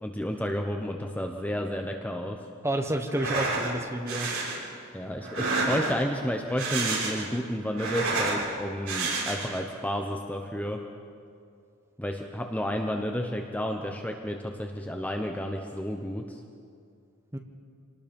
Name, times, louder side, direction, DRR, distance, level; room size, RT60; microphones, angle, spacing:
voice 1, 0.0-2.4 4.9-10.8 12.0-16.4, equal, 5° left, 3 dB, 0.9 m, -31 dB
voice 2, 2.6-4.3 17.3-17.4, right 1 dB, 10° right, 5 dB, 1.2 m, -29 dB
sound 1, 3.1-3.7 4.1-4.6 5.2-6.1 6.5-7.3 7.6-8.4 8.9-9.6, right 3 dB, 70° right, 5.3 m, -29 dB
26.5 x 19.0 x 5.3 m, 2.3 s
head